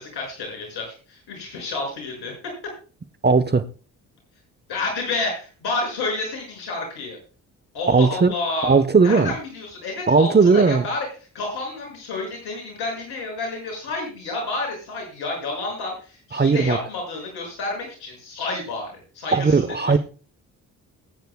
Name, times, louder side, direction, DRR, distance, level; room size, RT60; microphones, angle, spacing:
voice 1, 0.0-2.3 4.7-7.2 7.7-8.8 9.0-11.1 11.3-19.9, left 3 dB, 75° left, 6.3 m, -30 dB
voice 2, 3.2-3.6 7.9-8.3 8.6-9.3 10.1-10.8 16.3-16.8 19.3-20.0, right 4 dB, 25° right, 1.0 m, -17 dB
21.5 x 9.2 x 2.3 m
hypercardioid pair, 45°, 40 cm